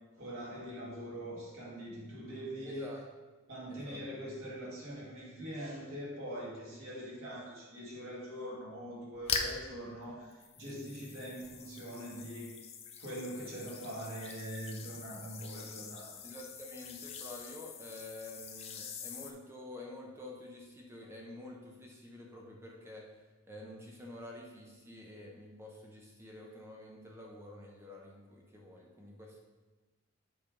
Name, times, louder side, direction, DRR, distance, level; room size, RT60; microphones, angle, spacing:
voice 1, 0.1-2.9 3.5-12.6 13.0-16.2, equal, 85° right, -6 dB, 2.3 m, -43 dB
voice 2, 2.6-3.0 3.7-4.0 16.2-23.1 23.5-29.4, left 1 dB, 10° right, -1 dB, 0.8 m, -49 dB
sound 1, 9.1-9.7 10.3-19.3, left 5 dB, 30° left, 0.5 m, -43 dB
7.5 x 3.5 x 5.1 m, 1.2 s
head